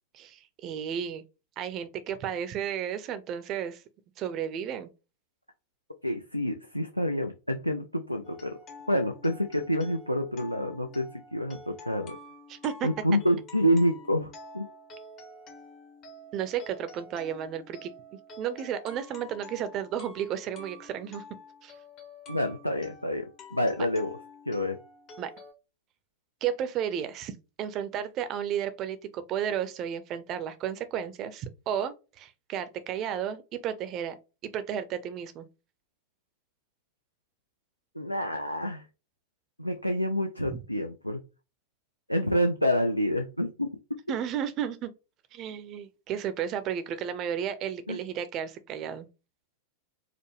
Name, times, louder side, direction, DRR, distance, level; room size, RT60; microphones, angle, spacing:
voice 1, 0.1-1.2 1.6-3.8 4.2-4.9 12.5-12.9 16.3-17.9 18.4-21.2 21.6-21.7 25.2-25.3 26.4-34.2 34.5-35.5 44.1-44.9 45.3-49.1, right 9 dB, 35° right, 0.6 m, -33 dB
voice 2, 6.0-8.5 8.9-12.2 12.8-14.6 22.3-23.2 23.5-24.2 24.5-24.8 38.0-38.8 39.6-41.2 42.1-43.7 47.9-48.0, equal, 90° left, 0.4 m, -28 dB
sound 1, 8.2-25.5, left 2 dB, 35° left, 0.9 m, -49 dB
4.9 x 2.1 x 3.1 m
figure-of-eight pair, 90°, 0 cm